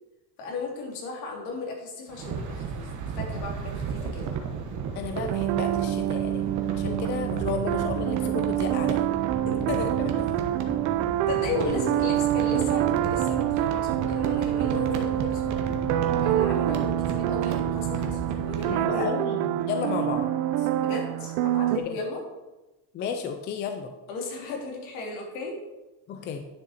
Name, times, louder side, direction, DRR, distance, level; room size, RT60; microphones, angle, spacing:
voice 1, 0.4-4.3 9.5-9.6 11.3-15.8 16.2-19.1 20.7-22.2 24.1-25.5, left 3 dB, 75° left, 0 dB, 3.0 m, -35 dB
sound 1, 2.1-18.8, right 5 dB, 35° right, 1.1 m, -34 dB
voice 2, 4.9-9.0 9.7-10.3 18.7-20.3 20.6-20.7 21.8-21.9 22.9-23.9 26.1-26.4, left 6 dB, 25° left, 6 dB, 0.3 m, -33 dB
sound 2, 5.1-21.8, right 13 dB, 70° right, 0.7 m, -26 dB
10.0 x 6.2 x 4.2 m, 1.1 s
cardioid pair, 165°, 47 cm